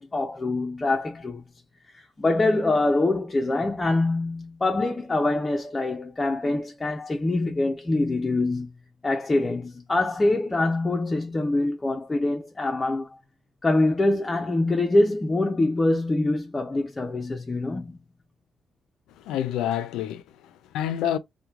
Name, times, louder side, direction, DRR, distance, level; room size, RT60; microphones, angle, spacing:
voice 1, 0.0-1.4 1.9-8.7 9.0-13.2 13.6-18.0, left 2 dB, 20° left, 0.4 m, -24 dB
voice 2, 19.2-21.2, left 10 dB, 90° left, 0.4 m, -28 dB
3.0 x 2.1 x 2.3 m
cardioid pair, 90°, 0 cm